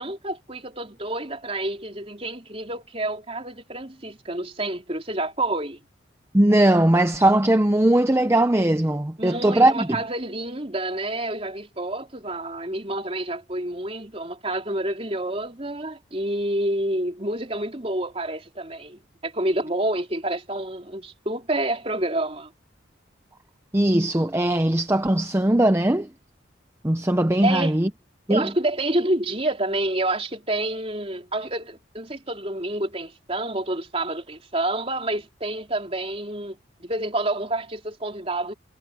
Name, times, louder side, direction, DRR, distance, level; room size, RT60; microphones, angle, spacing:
voice 1, 0.0-5.9 9.2-22.5 27.4-27.8 28.3-38.5, right 1 dB, 30° right, 3.8 m, -28 dB
voice 2, 6.3-9.9 23.7-26.1 26.8-27.9 28.3-28.5, right 1 dB, 15° right, 0.6 m, -19 dB
head